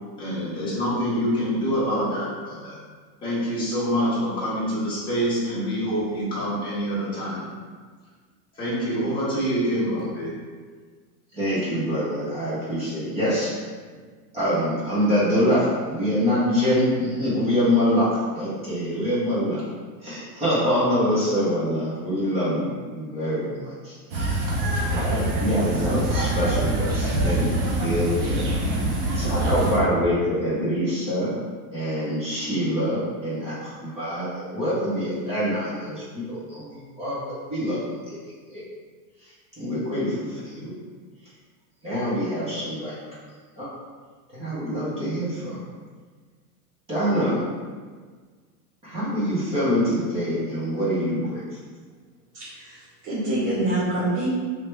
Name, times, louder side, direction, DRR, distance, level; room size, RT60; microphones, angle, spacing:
voice 1, 0.2-2.7 3.2-7.4 8.5-10.3, equal, 10° left, -10 dB, 0.9 m, -26 dB
voice 2, 11.3-13.6 14.3-19.6 20.0-24.5 24.8-28.4 29.1-31.4 31.7-38.2 38.4-38.6 39.2-40.7 41.8-43.0 43.6-43.7 44.3-45.6 46.9-47.4 48.8-51.4, equal, 15° right, -9 dB, 0.8 m, -25 dB
sound 1, 24.1-29.8, right 1 dB, 35° right, 0.5 m, -24 dB
voice 3, 52.3-54.3, right 1 dB, 55° right, -11 dB, 1.2 m, -26 dB
3.3 x 2.8 x 3.1 m, 1.5 s
supercardioid pair, 165°, 48 cm